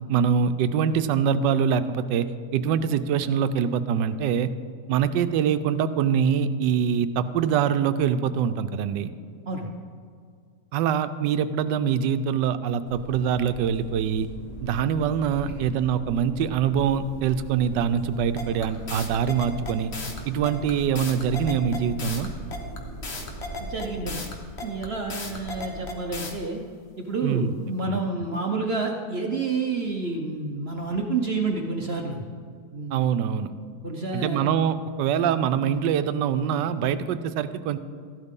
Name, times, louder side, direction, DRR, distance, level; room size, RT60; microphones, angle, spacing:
voice 1, 0.1-2.3 2.5-4.5 4.9-9.1 10.7-14.3 14.6-19.9 20.3-22.3 27.2-27.5 27.8-28.0 32.9-33.5 34.1-37.8, right 8 dB, 85° right, 11 dB, 1.2 m, -24 dB
sound 1, 12.8-24.2, right 2 dB, 75° left, 2.5 m, -41 dB
sound 2, 18.3-26.3, left 3 dB, 40° left, 1.3 m, -35 dB
voice 2, 23.6-24.3 24.6-26.6 27.0-32.2 32.7-33.0 33.8-34.5, right 3 dB, 50° right, 2 dB, 0.8 m, -29 dB
14.0 x 12.0 x 3.7 m, 2.1 s
omnidirectional pair, 1.9 m